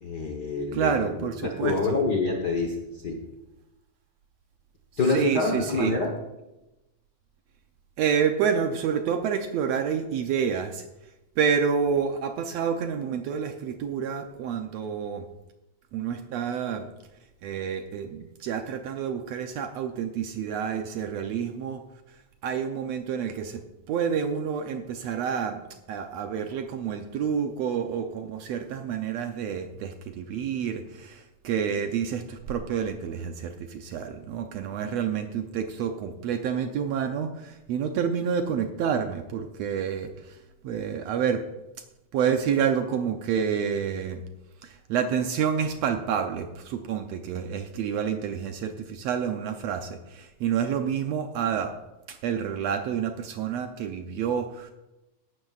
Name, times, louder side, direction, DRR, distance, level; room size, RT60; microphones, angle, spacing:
voice 1, 0.0-3.2 5.0-6.1, left 3 dB, 55° left, 2 dB, 1.1 m, -27 dB
voice 2, 0.7-2.0 5.1-5.9 8.0-10.8 11.4-15.2 15.9-16.9 17.4-21.8 22.4-23.6 23.9-40.4 40.6-41.4 42.1-44.2 44.6-51.7 52.1-54.7, right 7 dB, 75° right, 6 dB, 1.7 m, -28 dB
16.5 x 12.0 x 2.4 m, 0.98 s
omnidirectional pair, 3.4 m